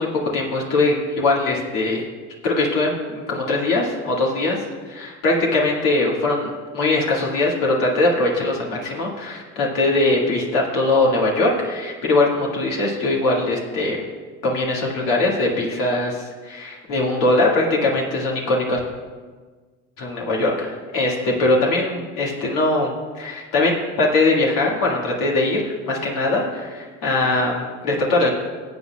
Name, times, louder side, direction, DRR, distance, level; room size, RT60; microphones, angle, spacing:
voice 1, 0.0-2.0 2.4-4.6 4.9-14.0 14.4-18.8 20.0-22.9 23.1-28.3, left 2 dB, 65° left, -3 dB, 2.1 m, -21 dB
18.5 x 8.2 x 2.3 m, 1.5 s
hypercardioid pair, 70°, 36 cm